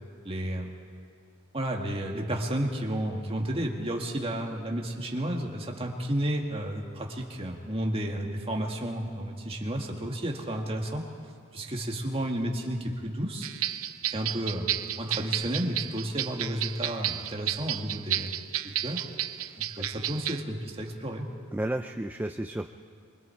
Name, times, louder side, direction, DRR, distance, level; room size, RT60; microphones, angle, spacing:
voice 1, 0.2-0.8 1.5-11.0 11.5-13.5 14.1-14.7 15.0-18.3 18.6-19.0 19.6-21.3, right 1 dB, 30° right, 1 dB, 2.0 m, -32 dB
sound 1, 13.4-20.4, right 12 dB, 85° right, 0.7 m, -32 dB
voice 2, 19.4-19.8 21.5-22.7, right 1 dB, 10° right, 6 dB, 0.4 m, -33 dB
24.5 x 24.0 x 4.6 m, 2.3 s
head